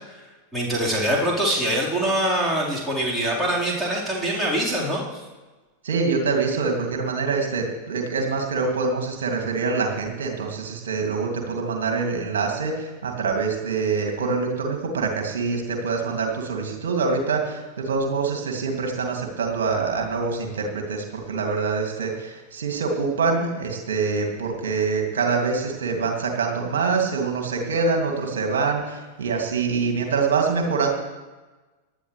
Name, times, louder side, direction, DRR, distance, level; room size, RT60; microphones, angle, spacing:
voice 1, 0.5-5.2, right 1 dB, 5° right, -7 dB, 4.4 m, -24 dB
voice 2, 5.8-30.9, right 4 dB, 65° right, 2 dB, 2.6 m, -25 dB
18.5 x 11.5 x 3.4 m, 1.2 s
figure-of-eight pair, 90°, 0 cm